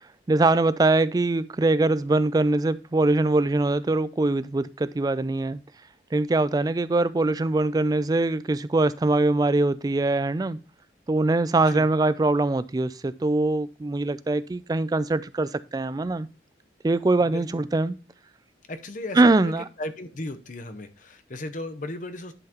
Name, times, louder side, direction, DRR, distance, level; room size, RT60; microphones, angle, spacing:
voice 1, 0.3-5.6 6.1-10.6 11.1-16.3 16.8-18.0 19.1-19.6, right 2 dB, 20° right, 0.3 m, -22 dB
voice 2, 18.7-19.5 19.8-22.3, left 1 dB, 45° left, 0.8 m, -35 dB
11.0 x 5.7 x 2.9 m
head